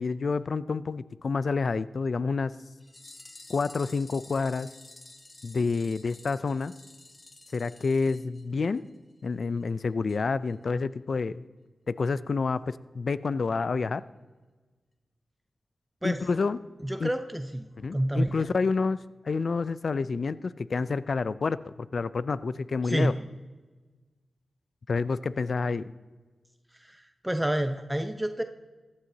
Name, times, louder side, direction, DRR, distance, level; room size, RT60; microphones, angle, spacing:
voice 1, 0.0-2.5 3.5-4.7 5.4-6.7 7.5-8.8 9.2-11.4 11.9-14.0 16.0-16.6 17.0-17.1 17.8-23.1 24.9-25.9, left 4 dB, 65° left, 16 dB, 0.4 m, -28 dB
sound 1, 2.8-9.0 9.3-9.4 9.6-9.7 10.1-10.2 10.5-10.6, left 2 dB, 40° left, 0.9 m, -51 dB
voice 2, 16.8-18.5 22.8-23.2 26.8-28.4, right 1 dB, 10° right, 7 dB, 0.7 m, -29 dB
15.0 x 11.5 x 2.8 m, 1.3 s
cardioid pair, 50°, 0 cm